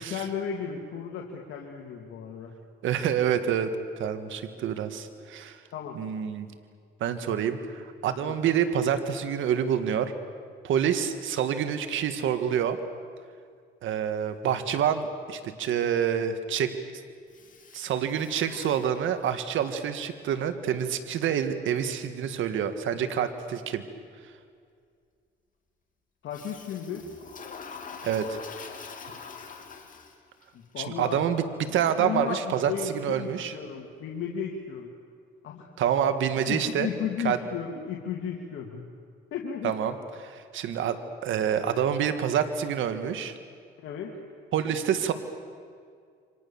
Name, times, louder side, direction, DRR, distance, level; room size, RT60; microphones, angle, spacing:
voice 1, 0.0-2.5 5.7-6.0 8.2-8.3 26.2-27.0 30.5-31.2 32.0-34.9 35.4-35.7 36.5-38.8 39.3-39.7 43.8-44.2, left 7 dB, 75° left, 0 dB, 2.6 m, -34 dB
voice 2, 2.8-3.7 4.0-5.6 6.0-6.5 7.0-10.1 10.6-12.8 13.8-16.7 17.7-23.8 28.0-28.4 30.8-31.4 31.7-33.5 35.8-36.9 37.2-37.4 39.6-39.9 40.2-43.4 44.5-45.1, right 8 dB, 80° right, 9 dB, 1.8 m, -27 dB
Toilet flush, 17.3-19.5 26.3-30.4, left 5 dB, 40° left, 3.3 m, -44 dB
28.5 x 25.0 x 7.2 m, 2.2 s
cardioid pair, 90°, 20 cm